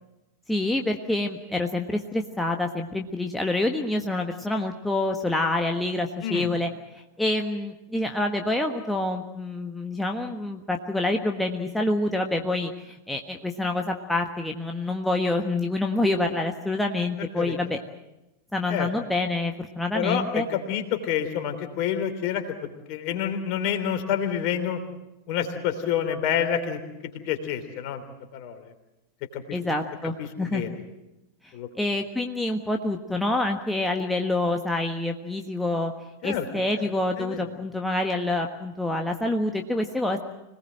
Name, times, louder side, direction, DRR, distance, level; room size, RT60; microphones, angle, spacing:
voice 1, 0.5-17.8 18.5-20.4 29.5-30.8 31.8-35.9 36.2-40.2, left 2 dB, 5° left, 3 dB, 1.4 m, -27 dB
voice 2, 17.2-17.5 18.7-18.9 19.9-22.5 22.9-24.8 25.3-26.8 27.2-28.0 28.3-28.7 29.3-29.6 30.2-30.7 31.5-31.7 36.2-36.5 36.7-36.9 37.2-37.4, left 9 dB, 45° left, 6 dB, 3.3 m, -28 dB
26.0 x 19.0 x 7.7 m, 0.97 s
figure-of-eight pair, 90°, 0 cm